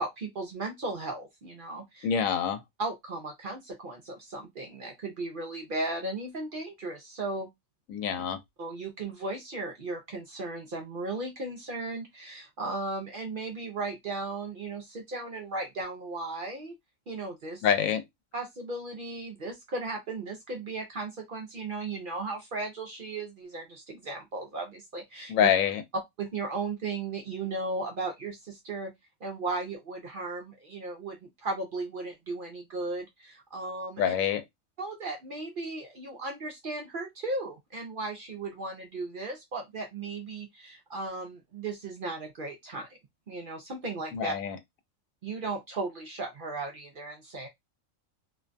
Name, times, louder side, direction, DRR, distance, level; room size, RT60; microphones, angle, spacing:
voice 1, 0.0-2.1 2.8-7.5 8.6-16.7 17.1-17.7 18.3-25.5 26.2-28.9 29.2-34.1 34.8-43.0 43.3-44.3 45.2-47.5, right 3 dB, 55° right, 0.6 m, -36 dB
voice 2, 2.0-2.6 7.9-8.4 17.6-18.0 25.3-25.8 34.0-34.4 44.1-44.6, left 8 dB, 85° left, 1.0 m, -26 dB
2.5 x 2.2 x 2.4 m
omnidirectional pair, 1.4 m